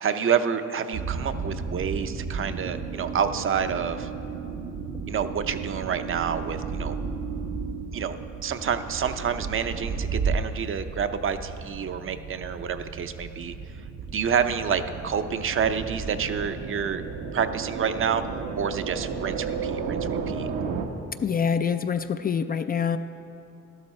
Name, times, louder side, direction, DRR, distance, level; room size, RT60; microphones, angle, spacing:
voice 1, 0.0-4.1 5.1-6.9 7.9-8.1 8.4-13.5 14.1-17.0 17.3-18.2 18.6-20.5, right 7 dB, 45° right, 9 dB, 0.6 m, -28 dB
sound 1, 0.9-20.9, right 5 dB, 80° right, 1.0 m, -33 dB
voice 2, 21.2-23.0, left 7 dB, 30° left, 9 dB, 0.4 m, -25 dB
12.0 x 12.0 x 4.3 m, 2.8 s
cardioid pair, 90°, 30 cm